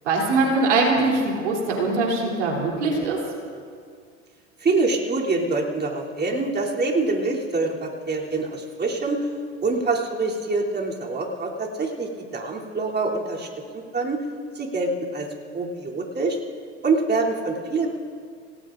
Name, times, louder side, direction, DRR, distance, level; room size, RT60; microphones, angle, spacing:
voice 1, 0.0-3.2, right 3 dB, 85° right, -1 dB, 3.3 m, -22 dB
voice 2, 4.6-9.3 9.6-14.3 14.5-15.3 15.5-16.4 16.8-17.9, right 3 dB, 30° right, -2 dB, 3.1 m, -25 dB
27.5 x 18.5 x 2.6 m, 2.1 s
hypercardioid pair, 70°, 35 cm